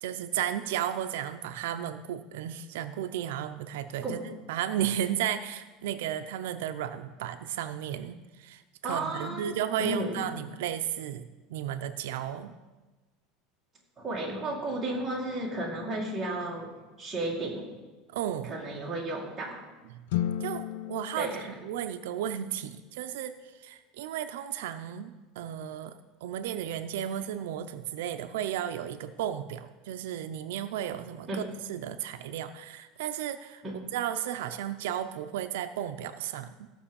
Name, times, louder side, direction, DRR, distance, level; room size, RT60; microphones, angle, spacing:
voice 1, 0.0-4.2 4.5-12.5 18.1-18.5 18.9-19.0 19.9-20.0 20.4-20.6 20.9-23.4 23.6-31.4 31.7-33.6 33.9-36.7, right 10 dB, 90° right, 9 dB, 0.7 m, -34 dB
voice 2, 8.8-10.2 14.0-16.7 17.0-17.7 18.4-19.7 21.2-21.5 31.3-31.5 33.6-33.8, right 2 dB, 10° right, -4 dB, 2.3 m, -33 dB
sound 1, 20.1-22.5, left 12 dB, 85° left, 0.4 m, -34 dB
15.0 x 6.1 x 7.1 m, 1.2 s
cardioid pair, 180°, 0 cm